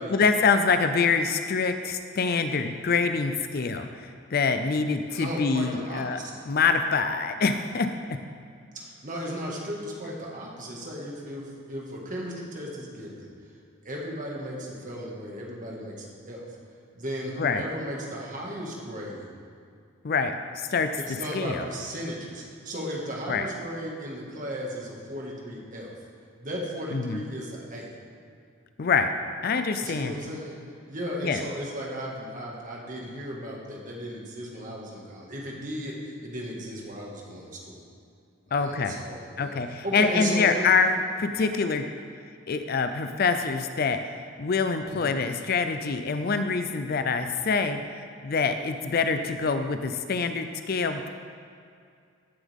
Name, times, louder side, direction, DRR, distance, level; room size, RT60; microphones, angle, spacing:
voice 1, 0.1-6.2 6.5-7.9 17.4-17.6 20.0-20.9 21.3-21.7 23.3-23.5 26.9-27.2 28.8-29.1 29.4-30.1 31.2-31.4 38.5-39.0 39.4-41.8 42.5-44.0 44.4-47.8 48.2-51.1, left 5 dB, 45° left, 8 dB, 0.5 m, -25 dB
voice 2, 5.2-6.3 8.7-13.3 13.8-16.4 17.0-19.3 21.0-25.9 26.4-27.9 29.8-30.6 30.9-37.8 38.5-40.7 44.9-45.1, equal, 40° right, -3 dB, 1.9 m, -35 dB
15.5 x 7.3 x 3.6 m, 2.3 s
head